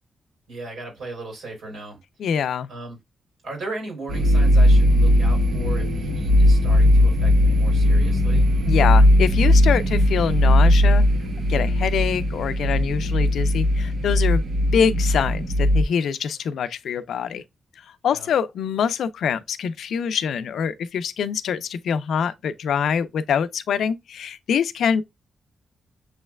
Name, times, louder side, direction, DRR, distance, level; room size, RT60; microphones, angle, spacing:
voice 1, 0.5-2.0 2.7-3.0 3.4-8.5 18.1-18.3, right 2 dB, 80° right, 3.2 m, -37 dB
voice 2, 2.2-2.7 8.6-11.0 11.5-14.4 14.7-17.4 18.0-25.0, left 7 dB, 90° left, 0.4 m, -24 dB
sound 1, 4.1-15.8, equal, 60° right, 0.8 m, -18 dB
7.0 x 3.2 x 2.2 m
wide cardioid pair, 120°, 0 cm